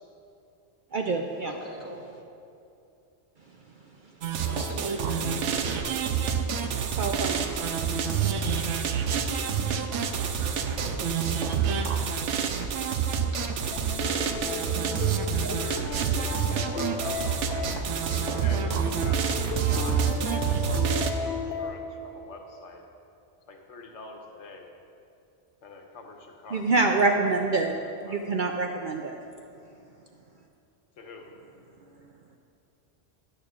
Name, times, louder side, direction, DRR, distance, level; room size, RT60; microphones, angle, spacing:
voice 1, 0.9-1.5 7.0-7.4 9.7-9.8 10.4-11.1 15.4-15.5 26.5-27.7 28.0-29.2, right 3 dB, 55° right, 2 dB, 0.6 m, -26 dB
voice 2, 1.4-2.0 4.4-6.0 8.2-8.6, equal, 15° right, -3 dB, 1.2 m, -41 dB
sound 1, 4.2-21.1, right 7 dB, 85° right, 1.0 m, -27 dB
sound 2, 13.7-21.7, left 3 dB, 60° left, 1.1 m, -35 dB
voice 3, 14.1-14.9 15.2-17.5 18.2-20.0 20.6-22.8 23.5-24.7 25.6-26.7 27.8-28.4 31.0-31.3, left 3 dB, 75° left, 2 dB, 1.2 m, -45 dB
13.0 x 9.9 x 2.4 m, 2.7 s
omnidirectional pair, 1.2 m